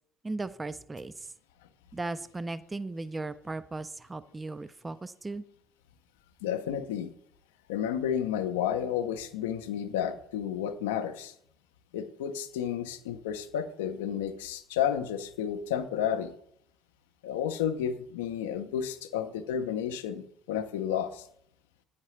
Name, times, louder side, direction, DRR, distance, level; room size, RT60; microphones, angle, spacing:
voice 1, 0.2-1.3 1.9-5.4, right 2 dB, 20° right, 14 dB, 0.4 m, -37 dB
voice 2, 6.4-7.1 7.7-11.3 11.9-16.3 17.2-21.3, left 9 dB, 80° left, 10 dB, 0.5 m, -31 dB
8.8 x 5.7 x 3.2 m, 0.68 s
hypercardioid pair, 55°, 0 cm